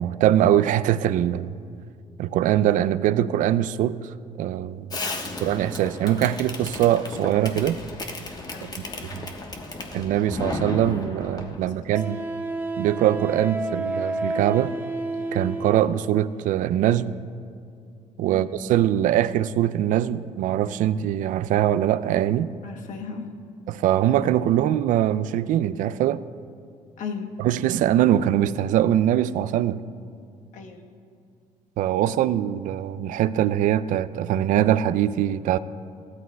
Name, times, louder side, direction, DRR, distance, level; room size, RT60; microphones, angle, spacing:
voice 1, 0.0-1.5 2.2-4.9 5.4-7.8 9.1-9.3 9.9-12.2 12.8-14.7 15.3-17.2 18.2-22.5 23.7-26.2 27.4-29.8 31.8-35.6, right 11 dB, 65° right, 15 dB, 0.4 m, -22 dB
Fireworks, 4.9-11.7, left 2 dB, 30° left, 1.2 m, -34 dB
voice 2, 5.0-5.4 8.5-9.0 11.6-12.3 18.3-18.6 22.6-23.3 27.0-27.3 30.5-30.8, left 5 dB, 60° left, 3 dB, 1.2 m, -38 dB
Wind instrument woodwind instrument, 11.9-16.0, right 2 dB, 15° right, 0.9 m, -30 dB
15.0 x 13.0 x 2.2 m, 2.3 s
supercardioid pair, 80°, 14 cm